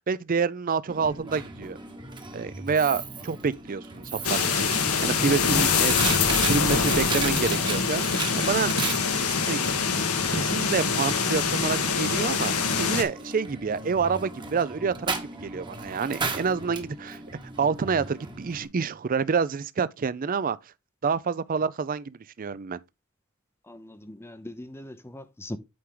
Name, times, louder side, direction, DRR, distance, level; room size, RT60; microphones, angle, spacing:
voice 1, 0.1-1.8 2.3-4.7 5.0-6.0 6.5-8.9 9.4-9.6 10.3-17.2 17.6-20.6 21.0-22.8, right 5 dB, 40° right, 0.4 m, -28 dB
Coin (dropping), 0.9-18.7, right 4 dB, 20° right, 1.1 m, -36 dB
sound 1, 4.2-13.0, left 5 dB, 90° left, 1.5 m, -24 dB
voice 2, 23.7-25.6, left 1 dB, 10° left, 0.5 m, -40 dB
8.6 x 4.8 x 3.7 m
head